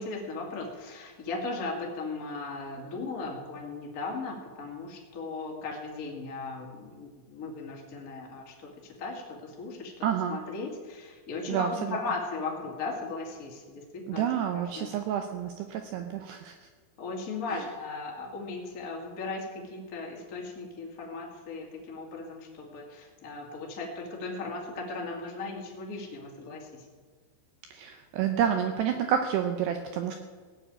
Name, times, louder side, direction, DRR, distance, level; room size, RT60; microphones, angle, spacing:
voice 1, 0.0-10.0 10.3-14.2 14.5-14.9 17.0-26.9, left 3 dB, 40° left, -1 dB, 1.2 m, -37 dB
voice 2, 10.0-10.4 11.5-12.0 14.1-16.7 17.5-17.6 27.7-30.2, right 9 dB, 90° right, 6 dB, 2.4 m, -29 dB
18.0 x 6.8 x 8.8 m, 1.5 s
omnidirectional pair, 5.9 m